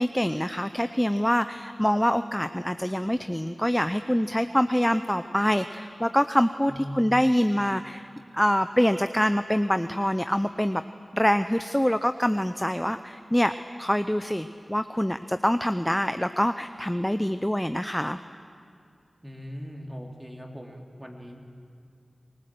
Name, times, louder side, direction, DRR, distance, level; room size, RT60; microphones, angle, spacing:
voice 1, 0.0-8.1 8.3-10.8 11.1-18.2, equal, 5° left, 10 dB, 0.6 m, -25 dB
voice 2, 6.7-7.2 19.2-21.4, equal, 10° right, 0 dB, 3.4 m, -39 dB
25.5 x 19.5 x 7.8 m, 2.4 s
cardioid pair, 45°, 0 cm